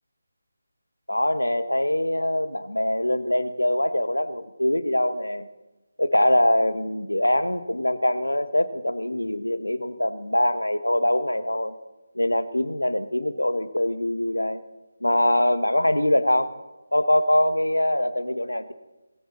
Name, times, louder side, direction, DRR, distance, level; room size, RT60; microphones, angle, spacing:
voice 1, 1.1-5.5 6.0-11.8 12.1-14.6 15.0-16.5 16.9-18.7, left 1 dB, 80° left, 12 dB, 1.3 m, -23 dB
20.5 x 16.0 x 4.1 m, 1.0 s
figure-of-eight pair, 155°, 0 cm